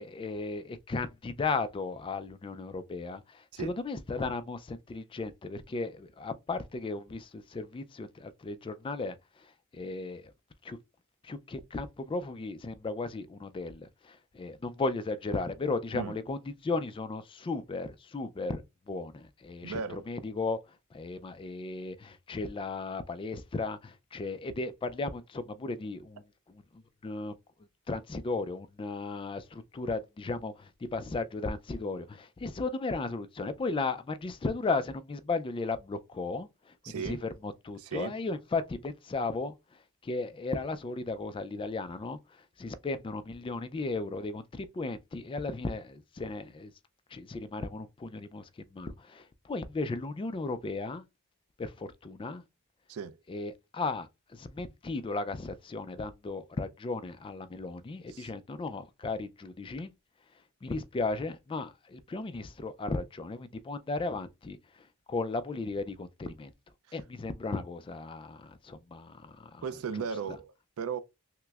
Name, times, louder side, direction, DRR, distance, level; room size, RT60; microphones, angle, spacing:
voice 1, 0.0-10.3 10.6-10.8 11.2-19.8 20.1-26.2 26.5-27.3 27.9-36.7 37.0-42.2 42.6-46.7 47.1-51.0 51.6-52.4 53.3-59.9 60.6-66.5 66.9-69.6 70.0-70.1, left 3 dB, 25° left, 0.3 m, -35 dB
voice 2, 19.6-20.1 36.8-37.2 37.8-38.1 52.9-53.2 58.1-58.3 69.6-71.0, right 6 dB, 70° right, 0.4 m, -36 dB
5.7 x 2.0 x 2.3 m
head